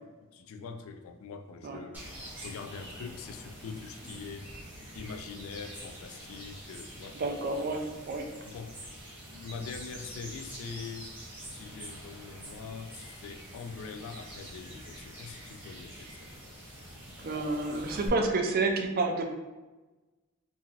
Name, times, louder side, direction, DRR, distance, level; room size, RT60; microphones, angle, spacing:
voice 1, 0.3-2.1 2.4-4.5 4.9-7.2 8.4-8.9 9.4-11.1 11.5-16.3, left 5 dB, 70° left, 7 dB, 0.3 m, -43 dB
sound 1, 1.9-18.1, right 1 dB, 10° right, 0.7 m, -46 dB
voice 2, 7.1-8.2 17.2-19.3, right 3 dB, 45° right, 3 dB, 0.4 m, -29 dB
3.8 x 2.8 x 2.4 m, 1.2 s
head